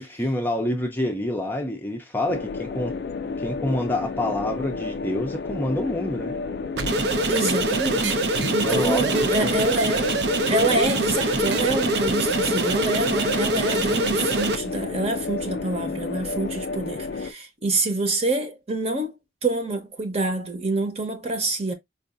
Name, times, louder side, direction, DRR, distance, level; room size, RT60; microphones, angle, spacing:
voice 1, 0.0-2.9 3.4-6.3 8.5-9.6, left 1 dB, 10° left, 0.5 m, -27 dB
sound 1, 2.3-17.3, left 4 dB, 65° left, 0.3 m, -31 dB
sound 2, 6.7-14.6, right 2 dB, 75° right, 0.6 m, -24 dB
voice 2, 7.3-10.2 10.5-21.7, right 2 dB, 35° right, 0.9 m, -26 dB
4.6 x 2.5 x 2.5 m
head